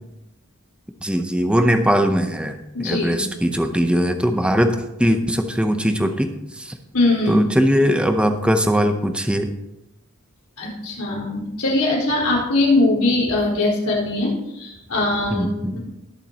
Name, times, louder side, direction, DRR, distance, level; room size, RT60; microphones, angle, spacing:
voice 1, 1.0-6.7 7.3-9.5 15.3-15.8, equal, 5° right, 6 dB, 0.7 m, -20 dB
voice 2, 2.7-3.2 6.9-7.4 10.6-15.5, left 2 dB, 85° left, -5 dB, 4.5 m, -21 dB
20.0 x 7.1 x 2.9 m, 0.88 s
head